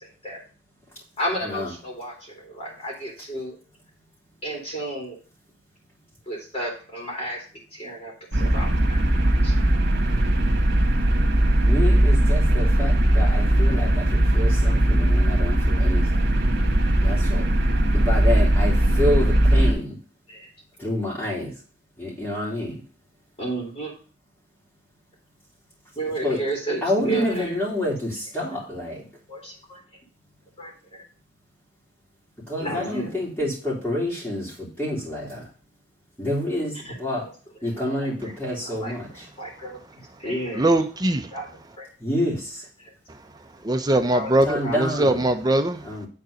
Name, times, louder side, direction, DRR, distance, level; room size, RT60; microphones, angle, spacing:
voice 1, 1.2-3.6 4.4-5.2 6.3-7.4 7.7-9.0 9.4-9.5 20.3-20.5 23.4-23.9 26.0-27.5 29.3-29.8 30.6-31.0 32.6-33.2 36.8-36.9 37.2-37.3 37.8-38.1 38.6-39.8 40.2-40.7 41.3-41.5 41.8-41.9 44.1-44.3 44.6-44.8, right 1 dB, 35° left, 2.7 m, -32 dB
sound 1, 8.3-19.7, right 1 dB, 65° right, 2.1 m, -19 dB
voice 2, 11.6-16.3 17.0-17.4 17.9-20.0 20.8-21.5 22.0-22.8 26.2-26.4 26.8-29.0 32.5-35.5 36.2-37.3 37.6-39.1 42.0-42.6 44.4-45.2 45.8-46.1, left 1 dB, 10° left, 3.0 m, -28 dB
voice 3, 40.5-41.3 43.6-45.8, right 1 dB, 20° right, 0.8 m, -21 dB
9.4 x 4.1 x 6.3 m
head